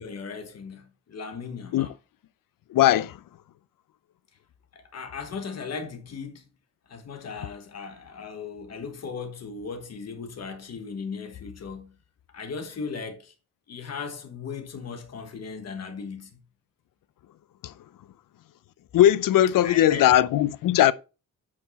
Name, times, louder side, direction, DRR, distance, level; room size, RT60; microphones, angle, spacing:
voice 1, 0.0-1.9 4.7-6.5 6.9-11.9 12.3-13.3 13.7-16.4 19.6-20.1, left 5 dB, 50° left, 1.2 m, -37 dB
voice 2, 2.7-3.1 17.6-17.7 18.9-20.9, left 12 dB, 80° left, 0.5 m, -19 dB
8.6 x 4.5 x 4.1 m
wide cardioid pair, 170°, 32 cm